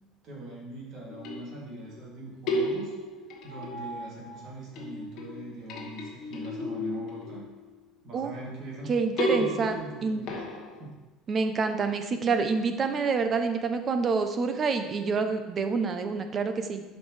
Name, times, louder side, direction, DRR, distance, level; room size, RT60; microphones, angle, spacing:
voice 1, 0.2-2.9 3.4-7.4 8.0-8.9 9.3-10.4 10.8-10.9, right 2 dB, 50° right, -4 dB, 2.6 m, -41 dB
sound 1, 1.1-2.0 2.5-4.5 4.8-7.8 9.2-10.8, left 1 dB, 50° left, 1.3 m, -34 dB
voice 2, 8.9-10.4 11.3-16.8, right 4 dB, 25° right, 8 dB, 0.6 m, -27 dB
11.5 x 5.3 x 3.2 m, 1.1 s
cardioid pair, 160°, 0 cm